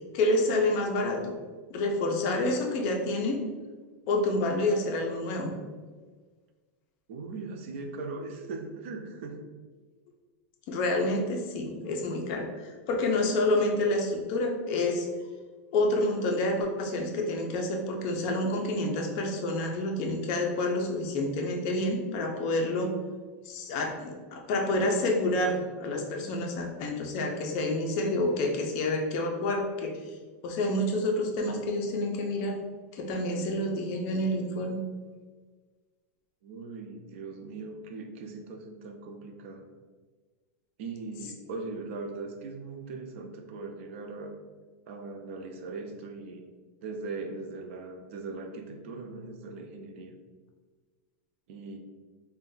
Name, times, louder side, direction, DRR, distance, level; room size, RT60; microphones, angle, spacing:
voice 1, 0.1-1.3 1.7-3.4 4.1-5.6 10.7-15.1 15.7-22.9 23.5-30.0 30.4-32.6 32.9-34.8, left 2 dB, 40° left, 2 dB, 0.4 m, -28 dB
voice 2, 7.1-9.4 36.4-39.7 40.8-44.3 44.9-46.4 46.8-50.2 51.5-51.8, right 3 dB, 60° right, 4 dB, 0.4 m, -40 dB
2.5 x 2.1 x 3.7 m, 1.4 s
supercardioid pair, 160°, 8 cm